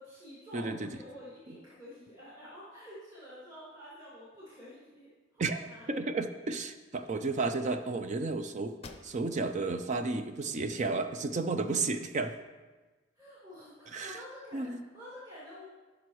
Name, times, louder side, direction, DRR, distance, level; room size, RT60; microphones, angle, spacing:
voice 1, 0.0-6.0 7.1-7.2 13.2-15.6, equal, 20° right, -10 dB, 2.2 m, -49 dB
voice 2, 0.5-0.9 5.4-5.6 5.9-8.7 9.0-12.3 13.9-14.2 14.5-14.8, right 3 dB, 35° right, 8 dB, 0.4 m, -32 dB
sound 1, 8.8-9.6 10.1-10.2 10.7-11.6, left 3 dB, 30° left, 0.6 m, -52 dB
15.5 x 6.1 x 3.1 m, 1.3 s
head